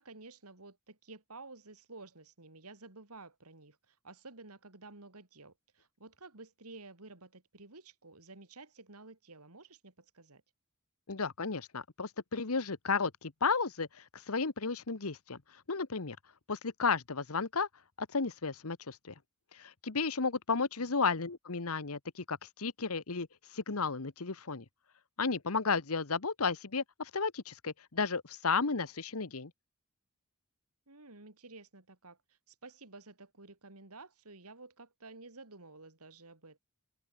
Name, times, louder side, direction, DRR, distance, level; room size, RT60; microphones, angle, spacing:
voice 1, 0.0-10.4 20.8-20.9 30.9-36.6, right 3 dB, 85° right, 3.6 m, -52 dB
voice 2, 11.1-16.2 16.5-17.7 18.0-19.1 19.5-23.3 23.5-24.6 25.2-29.5, left 4 dB, 70° left, 1.3 m, -33 dB
open air
head